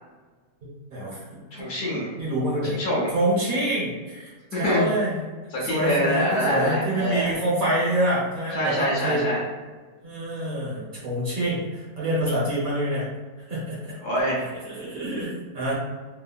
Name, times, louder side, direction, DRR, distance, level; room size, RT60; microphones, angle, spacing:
voice 1, 0.6-1.4 2.2-2.7 3.1-5.2 5.7-9.3 10.0-13.1 13.5-14.0 14.6-15.7, right 1 dB, 60° right, -6 dB, 1.1 m, -26 dB
voice 2, 1.5-2.1 2.6-3.1 4.5-4.9 5.5-7.3 8.5-9.4 14.0-14.5, equal, 65° left, -6 dB, 1.4 m, -25 dB
3.6 x 2.0 x 2.3 m, 1.4 s
omnidirectional pair, 1.9 m